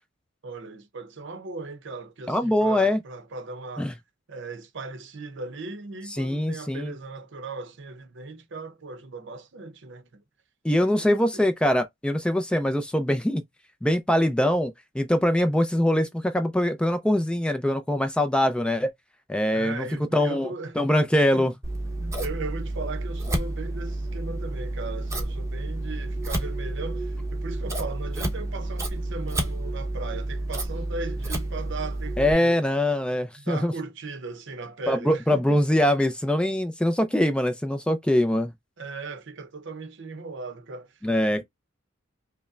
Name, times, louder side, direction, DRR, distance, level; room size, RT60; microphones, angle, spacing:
voice 1, 0.4-3.9 4.3-10.2 11.0-11.4 19.5-20.8 21.3-21.5 22.0-32.6 33.4-35.6 38.8-40.9 41.4-41.5, right 3 dB, 65° right, 0.7 m, -38 dB
voice 2, 2.3-3.0 3.8-3.9 6.2-6.9 10.6-13.4 13.8-18.9 19.3-19.9 20.1-20.5 20.8-21.5 32.2-33.7 34.9-38.5 41.0-41.4, left 1 dB, 5° left, 0.4 m, -23 dB
Scissors, 21.6-32.3, right 1 dB, 15° right, 0.9 m, -30 dB
5.3 x 2.1 x 2.4 m
head